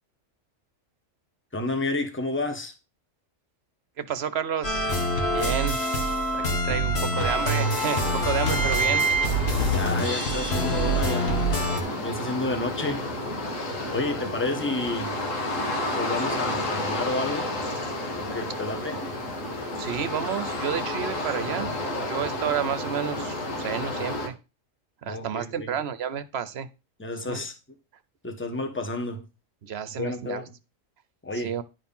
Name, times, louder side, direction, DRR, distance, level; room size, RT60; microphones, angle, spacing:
voice 1, 1.5-2.7 6.8-7.3 9.7-11.6 12.0-13.0 13.9-15.1 15.9-17.5 18.1-19.0 25.1-25.7 27.0-27.5 28.2-29.2 29.9-30.5 31.2-31.5, left 2 dB, 10° left, 1.4 m, -31 dB
voice 2, 4.0-4.9 5.3-5.8 6.3-9.0 19.8-21.7 22.0-24.4 25.0-26.7 27.3-27.4 29.6-30.4 31.3-31.6, right 8 dB, 55° right, 1.1 m, -30 dB
sound 1, 4.6-11.8, right 1 dB, 50° left, 2.0 m, -25 dB
sound 2, 7.2-24.3, left 1 dB, 75° left, 2.1 m, -31 dB
11.0 x 4.8 x 5.4 m
omnidirectional pair, 1.4 m